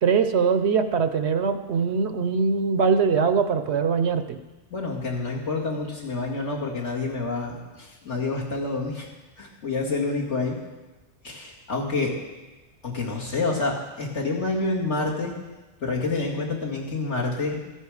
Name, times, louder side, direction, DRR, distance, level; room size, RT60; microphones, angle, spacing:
voice 1, 0.0-4.4, right 5 dB, 65° right, 9 dB, 0.9 m, -22 dB
voice 2, 4.7-9.1 9.4-10.6 11.2-12.2 12.8-15.3 15.8-17.6, left 3 dB, 65° left, -3 dB, 2.3 m, -28 dB
14.5 x 10.0 x 4.8 m, 1.1 s
omnidirectional pair, 1.3 m